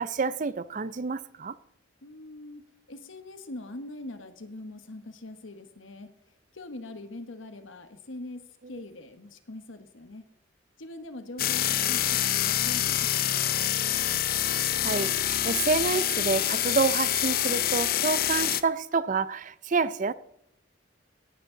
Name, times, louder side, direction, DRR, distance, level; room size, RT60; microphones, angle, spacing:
voice 1, 0.0-1.6 14.8-20.1, right 4 dB, 40° right, 0.5 m, -28 dB
voice 2, 2.0-6.1 6.5-10.3 10.8-13.4, left 2 dB, 85° left, 1.2 m, -42 dB
sound 1, 11.4-18.6, left 12 dB, 50° left, 0.5 m, -26 dB
17.5 x 9.0 x 3.9 m
head